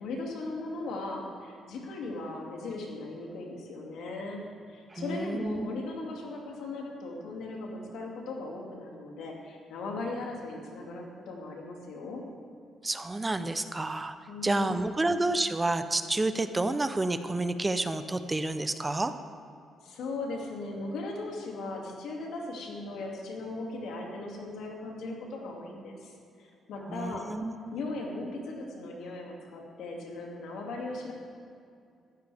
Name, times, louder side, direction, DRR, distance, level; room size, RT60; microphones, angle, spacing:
voice 1, 0.0-4.4 4.7-12.2 14.3-15.1 19.8-26.1 26.4-27.3 27.7-31.1, left 2 dB, 80° left, -1 dB, 2.5 m, -38 dB
voice 2, 4.9-5.8 12.8-14.2 14.4-19.1 26.9-27.8, right 2 dB, 20° right, 10 dB, 0.7 m, -30 dB
16.0 x 14.0 x 3.5 m, 2.4 s
cardioid pair, 90°, 0 cm